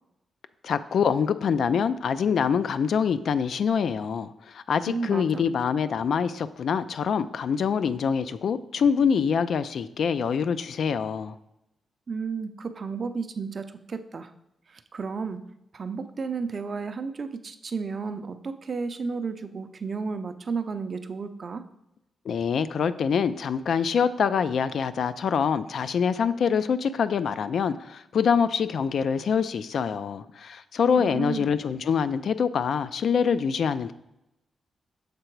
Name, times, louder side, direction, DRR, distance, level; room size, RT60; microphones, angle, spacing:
voice 1, 0.6-11.4 22.3-33.9, left 6 dB, 70° left, 13 dB, 0.3 m, -25 dB
voice 2, 4.9-5.5 12.1-14.3 14.7-15.5 15.7-21.6 31.0-31.5, right 5 dB, 45° right, 9 dB, 0.5 m, -33 dB
6.7 x 3.8 x 4.5 m, 0.86 s
cardioid pair, 115°, 0 cm